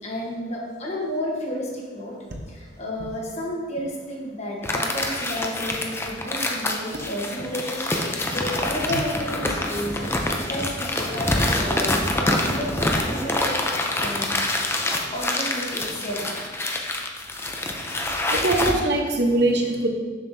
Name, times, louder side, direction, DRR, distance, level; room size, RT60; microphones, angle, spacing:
voice 1, 0.0-2.2 2.5-13.7 13.9-14.4 14.7-16.4, left 1 dB, 40° left, -2 dB, 1.2 m, -32 dB
sound 1, 4.6-18.7, left 1 dB, 15° left, 0.5 m, -26 dB
voice 2, 18.3-19.9, right 2 dB, 65° right, 2 dB, 0.9 m, -22 dB
6.8 x 6.5 x 2.7 m, 1.5 s
head